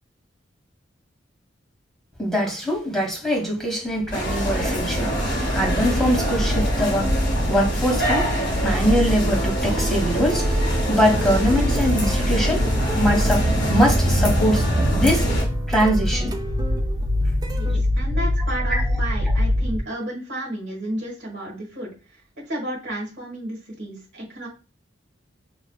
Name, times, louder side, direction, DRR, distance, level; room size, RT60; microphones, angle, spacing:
voice 1, 2.2-7.1 7.5-12.7 13.0-15.3 15.7-16.3 17.7-17.8 18.7-18.8, equal, ahead, -1 dB, 1.2 m, -23 dB
sound 1, 3.9-19.8, left 1 dB, 40° left, 0.8 m, -25 dB
sound 2, 4.1-15.4, right 1 dB, 65° left, 1.6 m, -25 dB
sound 3, 9.6-17.8, right 2 dB, 20° right, 0.4 m, -34 dB
voice 2, 17.5-22.2 22.5-24.5, right 1 dB, 65° right, -3 dB, 1.3 m, -32 dB
5.7 x 2.4 x 2.2 m, 0.33 s
head